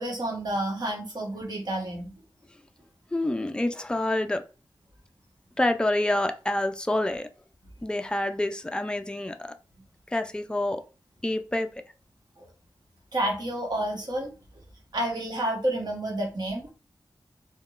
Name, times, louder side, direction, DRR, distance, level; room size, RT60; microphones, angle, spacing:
voice 1, 0.0-2.1 12.4-12.5 13.1-14.3 14.9-16.7, right 1 dB, 55° right, 1.0 m, -30 dB
voice 2, 3.1-4.4 5.6-7.3 7.8-9.5 10.1-10.8 11.2-11.7, left 1 dB, 10° left, 0.3 m, -27 dB
3.6 x 2.1 x 2.4 m
wide cardioid pair, 100°, 9 cm